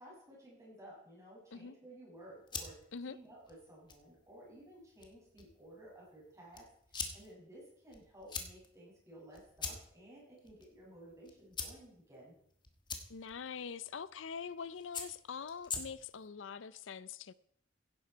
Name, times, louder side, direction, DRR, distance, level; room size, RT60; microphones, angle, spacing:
voice 1, 0.0-2.7 3.1-12.3, right 1 dB, 15° right, 7.0 m, -55 dB
sound 1, 2.1-16.3, left 5 dB, 25° left, 1.5 m, -47 dB
voice 2, 13.1-17.3, left 6 dB, 85° left, 0.5 m, -44 dB
16.0 x 11.0 x 4.6 m
head